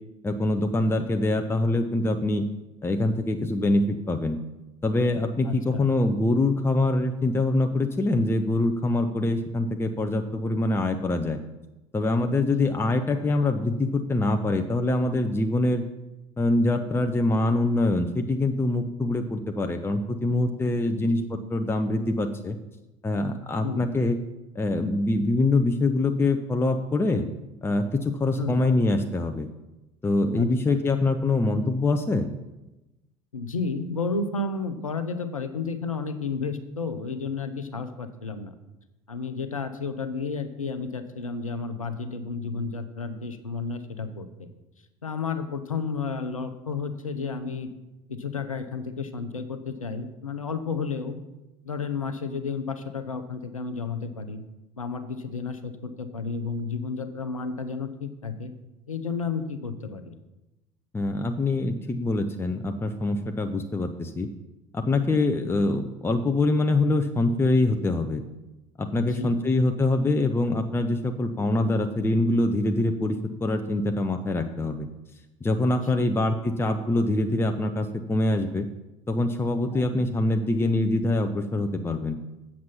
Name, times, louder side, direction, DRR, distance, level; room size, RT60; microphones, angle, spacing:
voice 1, 0.2-2.4 2.8-4.4 4.8-11.4 11.9-15.8 16.4-22.6 23.0-24.2 24.5-27.3 27.6-29.5 30.0-32.3 60.9-64.3 64.7-68.2 68.8-74.9 75.4-78.7 79.1-82.2, left 2 dB, 15° left, 5 dB, 0.7 m, -24 dB
voice 2, 5.4-5.9 12.4-12.5 23.6-23.9 28.4-28.6 30.3-30.8 33.3-38.5 39.1-44.5 45.0-47.7 48.1-51.2 51.6-54.4 54.8-58.5 58.9-60.1 69.0-69.4 75.8-76.1 79.7-79.9, left 4 dB, 90° left, 10 dB, 0.7 m, -32 dB
7.7 x 7.4 x 5.7 m, 1.0 s
figure-of-eight pair, 65°, 17 cm